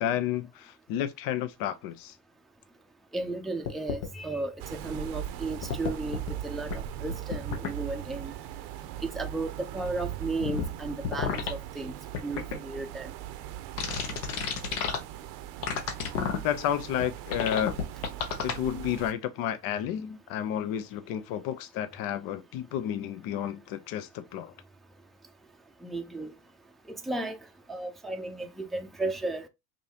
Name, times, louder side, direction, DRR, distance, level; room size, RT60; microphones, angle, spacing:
voice 1, 0.0-2.1 16.4-17.8 18.4-24.5, left 10 dB, 65° left, 0.7 m, -31 dB
voice 2, 3.1-8.3 9.0-11.9 12.2-13.1 25.8-26.3 27.1-27.4 27.7-29.5, right 2 dB, ahead, 0.5 m, -34 dB
sound 1, 3.6-4.1 5.6-6.3 6.7-6.8 7.1-7.7 10.4-10.7 11.0-11.5 12.1-12.6 13.8-15.0 15.6-16.4 17.0-17.1 17.3-18.5, left 7 dB, 85° left, 1.2 m, -30 dB
sound 2, 4.6-19.1, right 12 dB, 75° right, 0.7 m, -40 dB
5.2 x 2.7 x 2.8 m
supercardioid pair, 105°, 38 cm